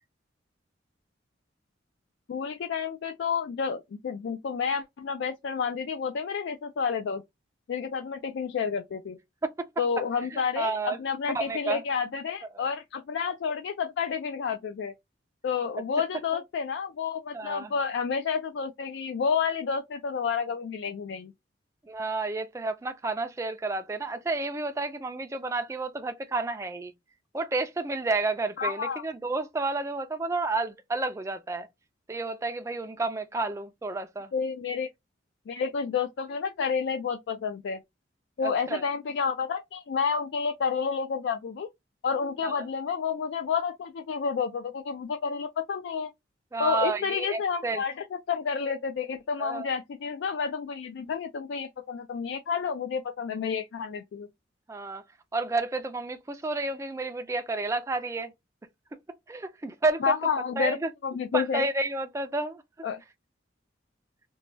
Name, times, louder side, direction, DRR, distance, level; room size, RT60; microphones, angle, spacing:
voice 1, 2.3-7.2 7.7-9.2 9.8-14.9 15.4-21.3 28.6-29.0 34.3-34.9 35.5-37.8 38.4-41.7 42.0-46.1 46.6-47.9 48.3-54.3 60.0-60.8 61.0-61.7 62.8-63.0, left 6 dB, 70° left, 0.3 m, -30 dB
voice 2, 10.3-11.0 11.3-11.8 12.5-12.6 16.3-16.4 17.3-17.7 21.8-26.9 27.3-31.7 32.1-34.3 38.4-38.8 42.4-42.7 46.5-47.8 49.4-49.7 54.7-55.0 55.3-58.3 59.3-60.1 60.6-60.9 61.3-62.6, right 3 dB, 15° right, 0.3 m, -31 dB
3.0 x 2.2 x 2.6 m
head